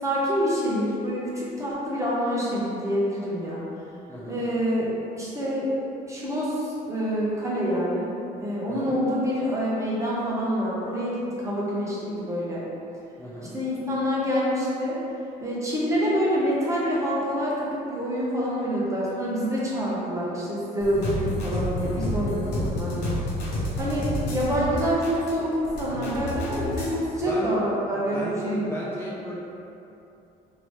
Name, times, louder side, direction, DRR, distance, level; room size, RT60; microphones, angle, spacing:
voice 1, 0.0-3.6 4.3-4.9 5.2-5.7 6.1-8.1 8.4-12.6 13.5-15.0 15.4-23.1 23.8-28.6, equal, 20° right, -7 dB, 0.8 m, -26 dB
voice 2, 4.1-4.4 8.7-9.0 13.2-13.5 22.5-22.9 27.1-27.5 27.8-29.4, equal, 15° left, -8 dB, 0.5 m, -35 dB
sound 1, 20.8-27.0, left 1 dB, 85° left, 0.8 m, -30 dB
3.0 x 2.8 x 3.1 m, 2.8 s
cardioid pair, 110°, 17 cm